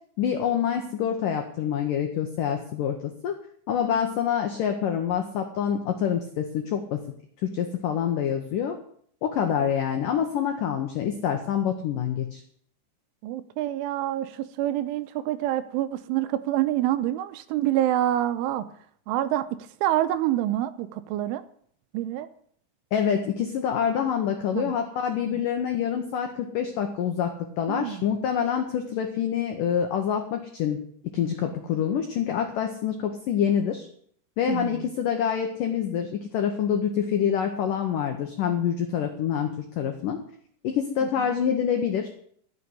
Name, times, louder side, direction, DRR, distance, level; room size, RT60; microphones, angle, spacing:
voice 1, 0.2-3.4 3.7-7.0 7.4-8.8 9.2-12.4 22.9-30.8 31.1-33.9 34.4-40.2 40.6-42.2, left 8 dB, 85° left, 1.8 m, -26 dB
voice 2, 13.2-18.7 19.1-21.4 21.9-22.3 24.5-24.7 25.3-25.4 27.7-28.0 34.5-34.9 41.0-41.3, right 13 dB, 85° right, 3.2 m, -27 dB
14.0 x 6.8 x 9.5 m
omnidirectional pair, 5.5 m